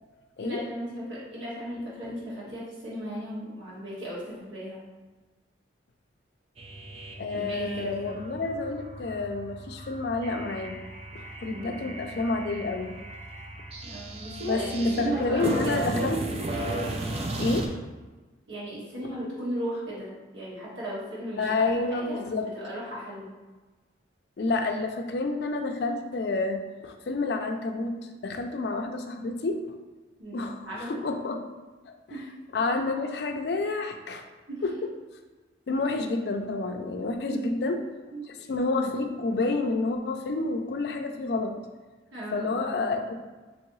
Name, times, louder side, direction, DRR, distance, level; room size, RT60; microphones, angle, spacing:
voice 1, 0.4-4.8 7.3-8.2 11.4-12.1 13.8-16.0 18.5-22.3 22.5-23.3 30.2-31.0 32.1-32.3 34.5-34.6 36.9-37.7 38.1-38.4 42.1-42.8, right 1 dB, 85° right, -7 dB, 1.4 m, -36 dB
sound 1, 6.6-17.7, right 1 dB, 30° right, 0.3 m, -35 dB
voice 2, 7.2-10.8 11.1-12.9 14.4-16.2 17.4-17.7 21.4-22.5 24.4-28.0 28.2-29.6 30.3-31.4 32.1-32.2 32.5-34.2 34.6-34.7 35.7-37.8 38.5-41.6 42.3-43.1, left 3 dB, 60° left, 5 dB, 0.4 m, -29 dB
3.6 x 3.0 x 3.1 m, 1.3 s
head